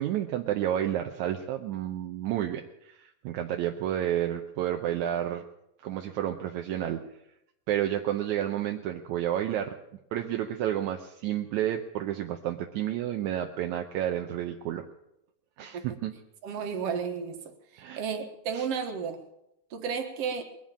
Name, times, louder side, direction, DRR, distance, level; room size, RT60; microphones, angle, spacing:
voice 1, 0.0-5.4 5.8-7.0 7.7-9.7 10.1-14.9 15.6-16.1 17.8-18.0 18.5-18.7, right 11 dB, 75° right, 4 dB, 2.0 m, -30 dB
voice 2, 16.4-17.4 17.7-19.2 19.7-20.4, right 6 dB, 55° right, 5 dB, 2.4 m, -32 dB
21.5 x 7.4 x 8.5 m, 0.83 s
omnidirectional pair, 3.6 m